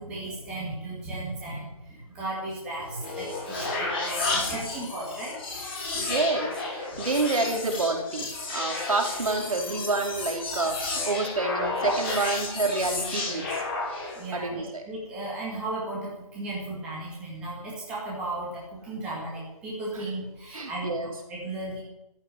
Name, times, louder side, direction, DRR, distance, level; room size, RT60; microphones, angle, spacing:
voice 1, 0.0-5.4 14.2-21.8, right 2 dB, 5° right, -5 dB, 2.2 m, -35 dB
sound 1, 2.8-14.3, left 3 dB, 20° left, 4.6 m, -32 dB
voice 2, 5.9-13.6 14.3-14.8 20.5-21.1, right 3 dB, 75° right, 2 dB, 4.5 m, -28 dB
14.0 x 8.8 x 9.5 m, 0.92 s
hypercardioid pair, 180°, 18 cm